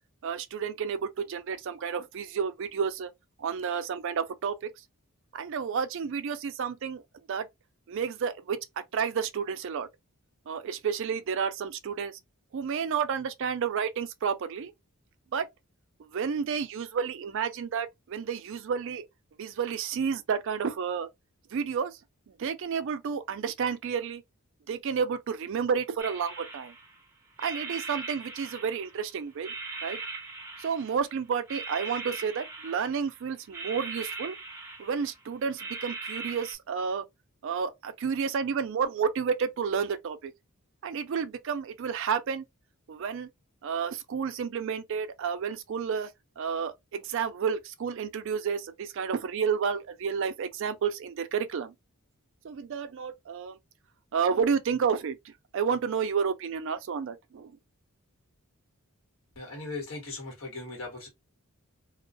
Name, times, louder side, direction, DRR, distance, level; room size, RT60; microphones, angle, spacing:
voice 1, 0.2-3.1 3.4-4.7 5.3-7.0 7.3-7.5 7.9-8.6 8.9-9.9 10.5-12.2 12.5-14.7 15.3-15.5 16.1-19.1 19.4-21.1 21.5-22.0 22.4-24.2 24.7-26.7 27.4-29.5 29.8-30.0 30.6-34.4 34.8-37.1 37.4-40.3 40.8-42.5 42.9-43.3 43.6-46.1 46.4-51.7 52.4-53.6 54.1-57.5, right 6 dB, 55° right, 0.3 m, -31 dB
sound 1, 26.0-27.0 27.4-29.0 29.4-31.1 31.5-33.1 33.5-35.2 35.6-36.5, right 3 dB, 10° right, 0.6 m, -40 dB
voice 2, 59.3-61.1, left 3 dB, 65° left, 1.3 m, -38 dB
2.3 x 2.2 x 2.4 m
head